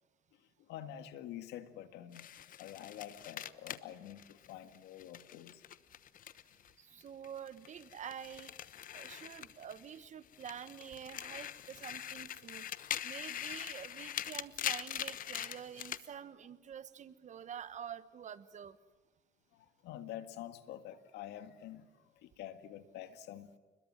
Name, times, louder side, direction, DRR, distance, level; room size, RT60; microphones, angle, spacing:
voice 1, 0.6-2.3 2.6-5.6 19.5-21.9 22.2-23.5, left 11 dB, 85° left, 10 dB, 2.0 m, -47 dB
sound 1, 2.1-6.7 7.0-10.0 10.3-16.0, left 11 dB, 55° left, 1.1 m, -43 dB
voice 2, 6.8-8.6 8.9-18.8, right 8 dB, 45° right, 14 dB, 1.3 m, -48 dB
29.5 x 21.5 x 7.6 m, 1.3 s
cardioid pair, 110°, 17 cm